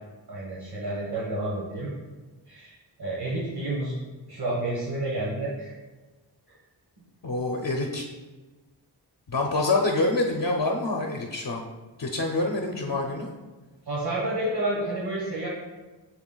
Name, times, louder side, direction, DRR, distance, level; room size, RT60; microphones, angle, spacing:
voice 1, 0.3-1.9 2.5-4.0 4.3-5.7 13.9-15.5, right 1 dB, 60° right, -6 dB, 1.5 m, -30 dB
voice 2, 7.2-8.1 9.3-11.7 12.0-13.3, left 2 dB, 55° left, 1 dB, 0.8 m, -26 dB
7.1 x 7.0 x 2.4 m, 1.2 s
wide cardioid pair, 55°, 43 cm